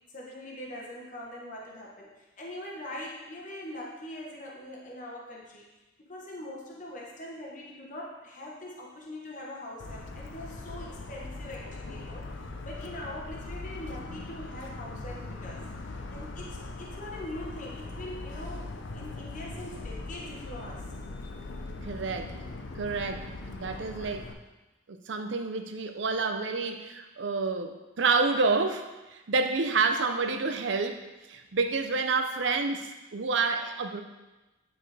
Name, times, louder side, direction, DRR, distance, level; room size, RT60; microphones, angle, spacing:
voice 1, 0.1-5.6 6.0-12.3 12.6-15.6 16.1-20.9, left 1 dB, 40° left, -3 dB, 1.1 m, -42 dB
Motor vehicle (road) / Siren, 9.8-24.3, left 2 dB, 75° left, 0.6 m, -40 dB
voice 2, 21.8-22.4 22.8-24.3 24.9-31.0 31.3-34.0, right 4 dB, 70° right, 6 dB, 0.6 m, -29 dB
9.6 x 4.4 x 3.3 m, 1.1 s
head